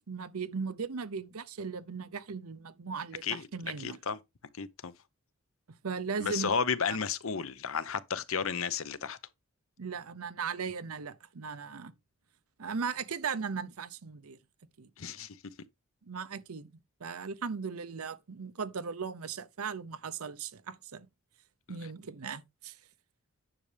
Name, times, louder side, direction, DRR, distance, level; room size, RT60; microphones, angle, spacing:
voice 1, 0.0-4.0 5.8-6.5 9.8-11.9 12.6-14.4 14.8-14.9 15.2-15.3 16.0-16.7 17.0-21.1 21.7-22.8, right 5 dB, 85° right, 0.7 m, -37 dB
voice 2, 3.8-4.2 4.6-4.9 6.2-9.2 15.0-15.4 21.7-21.8, left 6 dB, 65° left, 0.8 m, -33 dB
10.0 x 6.6 x 3.4 m
head